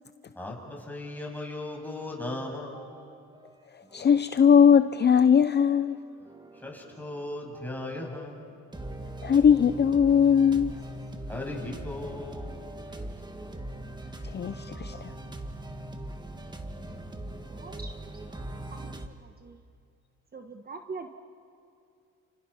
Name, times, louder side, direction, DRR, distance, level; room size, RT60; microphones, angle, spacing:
voice 1, 0.3-3.0 6.5-8.6 11.3-13.1, left 1 dB, 5° left, -1 dB, 7.2 m, -37 dB
sound 1, 2.6-3.5 3.8-8.2 8.7-19.1, right 1 dB, 15° right, 2.0 m, -41 dB
voice 2, 3.9-6.0 9.2-10.8 14.3-15.1, left 7 dB, 35° left, 12 dB, 0.6 m, -20 dB
voice 3, 17.5-17.9 18.2-19.6 20.3-21.1, right 4 dB, 30° right, 5 dB, 1.5 m, -43 dB
30.0 x 29.5 x 5.8 m, 2.5 s
cardioid pair, 90°, 30 cm